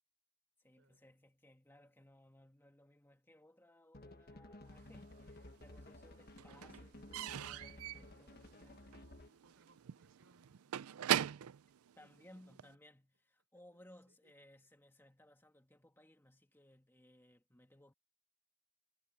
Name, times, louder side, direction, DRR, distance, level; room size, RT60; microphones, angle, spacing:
voice 1, 0.6-9.1 12.0-17.9, left 1 dB, 10° left, 1.9 m, -63 dB
sound 1, 3.9-9.5, left 1 dB, 45° left, 1.4 m, -55 dB
Slam / Squeak / Wood, 4.9-5.7 6.0-12.7, right 10 dB, 90° right, 0.4 m, -41 dB
voice 2, 9.4-11.5 12.0-12.6 13.5-13.8 14.1-14.3, right 2 dB, 60° right, 5.9 m, -72 dB
head